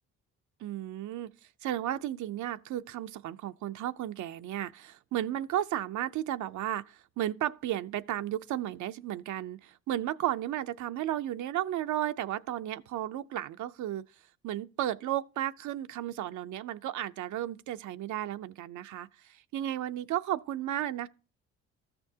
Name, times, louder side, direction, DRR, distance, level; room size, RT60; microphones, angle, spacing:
voice 1, 0.6-1.3 1.6-14.0 14.4-21.1, right 12 dB, 75° right, 0.6 m, -34 dB
13.5 x 6.8 x 2.8 m
cardioid pair, 90°, 30 cm